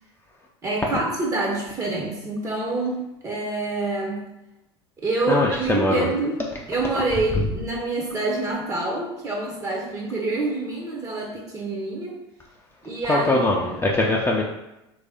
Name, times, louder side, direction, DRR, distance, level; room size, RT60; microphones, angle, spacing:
voice 1, 0.6-4.2 5.0-6.4 6.7-12.2 12.8-13.5, right 2 dB, 20° right, -1 dB, 0.7 m, -27 dB
voice 2, 5.3-6.1 13.1-14.4, left 2 dB, 15° left, -2 dB, 0.5 m, -21 dB
3.2 x 2.6 x 3.4 m, 0.91 s
hypercardioid pair, 75°, 15 cm